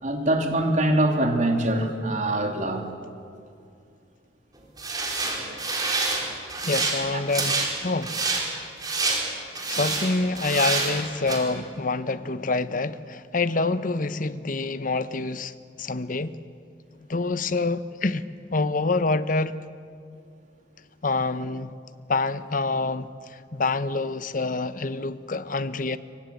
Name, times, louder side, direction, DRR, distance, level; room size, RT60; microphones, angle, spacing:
voice 1, 0.0-2.8, right 1 dB, 40° right, 2.9 m, -23 dB
sound 1, 4.8-6.2 6.5-7.0 7.3-7.7 8.0-8.4 8.8-9.2 9.5-10.1 10.4-11.0 11.3-11.4, right 3 dB, 20° right, 4.4 m, -26 dB
voice 2, 6.6-8.2 9.7-16.4 17.1-18.2 18.5-19.6 21.0-21.7 22.1-23.1 23.5-26.0, left 3 dB, 45° left, 0.9 m, -26 dB
26.5 x 23.5 x 8.4 m
head